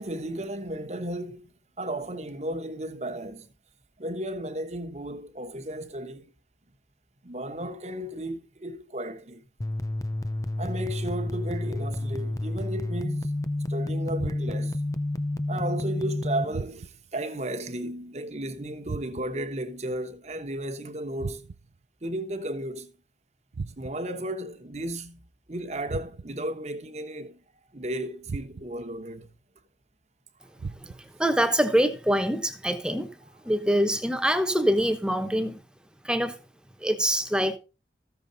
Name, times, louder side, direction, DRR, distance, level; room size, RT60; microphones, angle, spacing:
voice 1, 0.0-1.5 1.8-3.5 4.0-6.3 7.2-9.4 10.6-13.3 13.7-14.8 15.5-21.5 22.0-22.9 23.8-25.2 25.5-27.4 27.7-29.3, right 1 dB, 40° right, 1.1 m, -34 dB
sound 1, 9.6-16.4, left 1 dB, 20° left, 0.4 m, -30 dB
sound 2, 14.2-14.8 16.5-17.2 18.9-19.5 21.2-21.8 23.5-24.2 25.9-26.5 28.3-28.9 30.6-31.2, right 4 dB, 80° right, 0.5 m, -38 dB
voice 2, 30.8-33.2 33.4-35.6 36.0-36.4 36.8-37.6, equal, 5° right, 1.0 m, -25 dB
14.5 x 7.0 x 4.0 m
head